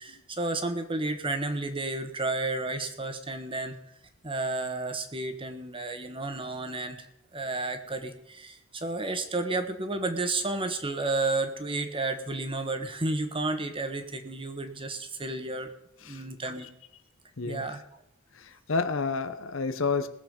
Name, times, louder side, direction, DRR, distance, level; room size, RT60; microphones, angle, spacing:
voice 1, 0.0-3.7 4.2-15.7 16.0-16.7 17.4-17.8, right 2 dB, 25° right, 7 dB, 1.3 m, -32 dB
voice 2, 18.3-20.1, left 4 dB, 70° left, 10 dB, 0.9 m, -30 dB
20.0 x 7.3 x 5.2 m, 0.84 s
head